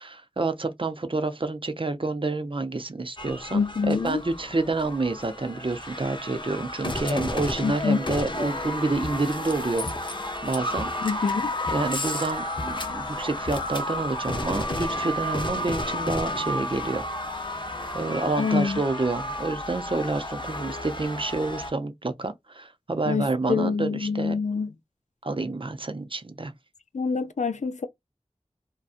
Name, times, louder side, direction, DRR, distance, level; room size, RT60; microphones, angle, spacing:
voice 1, 0.0-10.9 11.7-17.1 17.4-17.6 17.9-24.3 25.2-26.5, right 3 dB, 45° right, 0.6 m, -29 dB
sound 1, 3.2-21.7, left 1 dB, 40° left, 0.7 m, -32 dB
voice 2, 3.5-4.2 7.6-8.0 11.0-11.5 18.4-18.8 23.0-24.7 26.9-27.9, left 5 dB, 85° left, 0.4 m, -26 dB
2.7 x 2.3 x 2.4 m
wide cardioid pair, 40°, 12 cm